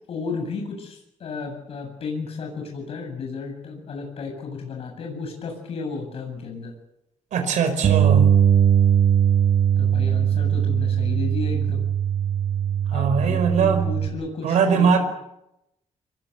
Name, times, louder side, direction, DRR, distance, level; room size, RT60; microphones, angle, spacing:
voice 1, 0.1-6.7 9.8-11.9 12.9-15.0, left 4 dB, 55° left, 1 dB, 7.8 m, -33 dB
voice 2, 7.3-8.3 12.9-13.9 14.4-15.0, right 6 dB, 80° right, 6 dB, 5.0 m, -21 dB
Bass guitar, 7.8-14.1, right 9 dB, 65° right, 3.1 m, -20 dB
25.5 x 21.5 x 8.1 m, 0.86 s
wide cardioid pair, 170°, 12 cm